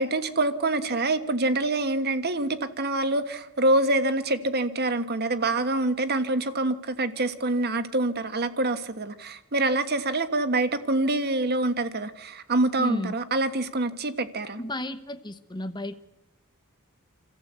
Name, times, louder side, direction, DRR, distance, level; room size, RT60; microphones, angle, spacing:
voice 1, 0.0-14.6, right 2 dB, 45° right, 11 dB, 1.4 m, -26 dB
voice 2, 12.8-13.1 14.6-15.9, left 1 dB, 20° left, 8 dB, 1.0 m, -33 dB
27.5 x 14.0 x 8.1 m, 0.99 s
head